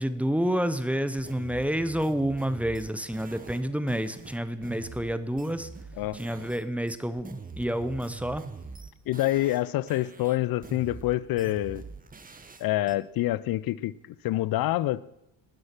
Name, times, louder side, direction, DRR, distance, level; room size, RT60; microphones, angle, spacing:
voice 1, 0.0-5.7 6.1-8.4, equal, 5° right, 12 dB, 0.8 m, -29 dB
sound 1, 1.2-6.6 6.9-9.6 9.9-13.0, right 4 dB, 20° right, 1.1 m, -44 dB
voice 2, 9.1-11.8 12.6-13.9 14.2-15.0, left 15 dB, 60° left, 21 dB, 0.6 m, -26 dB
19.0 x 6.5 x 5.9 m, 0.85 s
cardioid pair, 95°, 41 cm